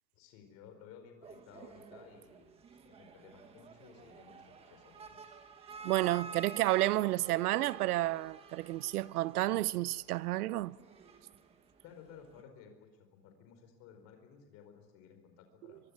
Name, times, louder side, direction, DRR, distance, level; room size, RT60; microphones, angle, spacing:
voice 1, 0.2-4.4 4.7-5.2 11.8-15.8, left 7 dB, 30° left, 4.8 m, -56 dB
sound 1, 1.2-12.4, right 5 dB, 10° right, 1.2 m, -51 dB
voice 2, 5.8-10.8, right 16 dB, 65° right, 0.8 m, -31 dB
24.0 x 23.5 x 9.6 m
supercardioid pair, 175°, 49 cm